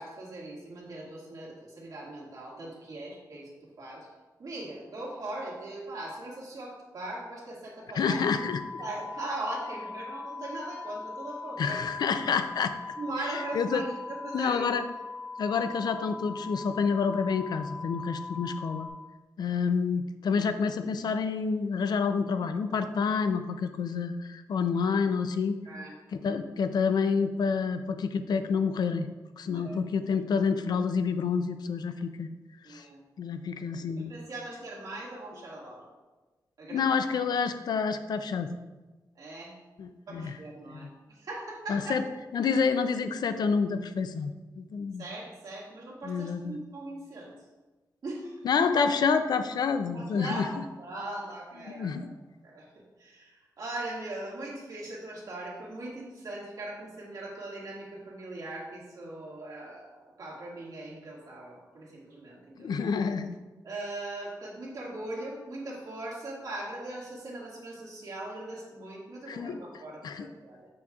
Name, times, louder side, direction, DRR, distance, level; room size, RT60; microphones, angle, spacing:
voice 1, 0.0-3.5 3.8-4.1 4.4-8.3 8.8-11.8 13.0-14.7 25.7-25.9 29.5-29.8 32.6-33.0 34.0-35.8 36.6-36.9 39.2-39.5 40.1-42.0 45.0-47.3 48.0-48.4 49.9-52.1 52.4-52.7 53.0-62.9 63.6-70.7, right 2 dB, 60° right, -5 dB, 1.9 m, -40 dB
voice 2, 8.0-8.8 11.6-12.7 13.2-13.8 14.3-14.8 15.4-18.9 19.4-25.6 26.1-29.1 29.4-32.3 32.7-32.8 33.2-34.1 36.7-38.5 39.8-40.4 40.7-40.9 41.7-42.0 42.3-45.0 46.0-46.6 48.4-50.5 51.6-52.1 62.6-63.4 69.3-69.6 70.0-70.3, left 5 dB, 80° left, 9 dB, 0.4 m, -28 dB
sound 1, 8.0-18.9, left 4 dB, 10° left, 0.8 m, -41 dB
7.5 x 6.0 x 2.4 m, 1.2 s
wide cardioid pair, 175°, 7 cm